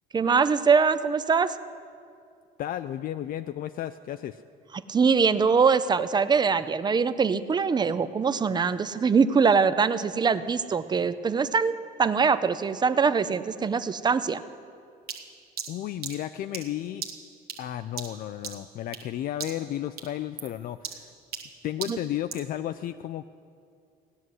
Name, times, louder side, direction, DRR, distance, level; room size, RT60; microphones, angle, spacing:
voice 1, 0.1-1.6 4.7-14.4 21.9-22.0, right 5 dB, 25° right, 13 dB, 0.5 m, -23 dB
voice 2, 2.6-4.4 15.7-17.0 17.6-21.1 21.6-23.3, left 12 dB, 55° left, 10 dB, 0.4 m, -33 dB
sound 1, 15.1-19.1 19.4-19.7 20.0-22.5, right 7 dB, 65° right, 1.3 m, -39 dB
17.0 x 6.2 x 9.6 m, 2.3 s
cardioid pair, 110°, 17 cm